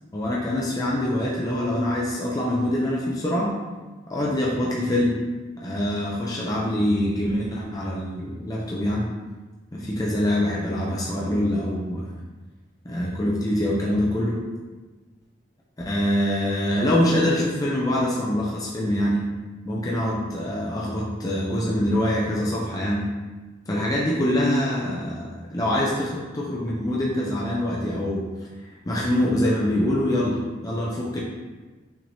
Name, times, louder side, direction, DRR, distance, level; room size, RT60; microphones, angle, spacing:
voice 1, 0.1-3.5 4.1-5.1 5.6-9.1 9.7-12.1 12.8-14.4 15.9-19.2 19.7-23.0 23.7-28.2 28.9-30.4 30.6-31.2, left 1 dB, 20° left, -5 dB, 0.5 m, -24 dB
5.8 x 3.3 x 2.7 m, 1.3 s
head